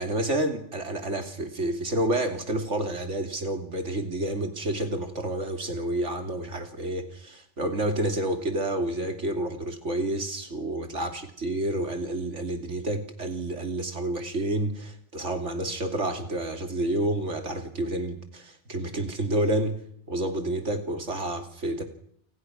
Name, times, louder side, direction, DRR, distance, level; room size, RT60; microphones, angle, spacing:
voice 1, 0.0-19.8 20.1-21.8, right 1 dB, 85° right, 6 dB, 3.1 m, -29 dB
28.5 x 26.0 x 6.2 m, 0.68 s
omnidirectional pair, 1.2 m